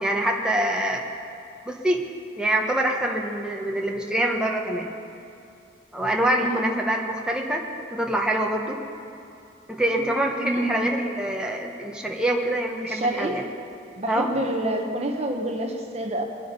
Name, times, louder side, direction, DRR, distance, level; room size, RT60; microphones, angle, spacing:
voice 1, 0.0-1.1 1.6-2.0 2.4-4.9 5.9-7.6 7.9-8.8 9.8-13.4 14.1-14.3, right 1 dB, 5° right, 0 dB, 1.1 m, -25 dB
voice 2, 10.4-10.7 12.8-13.4 14.0-16.2, right 1 dB, 35° right, 3 dB, 1.0 m, -27 dB
22.0 x 8.6 x 5.4 m, 2.7 s
head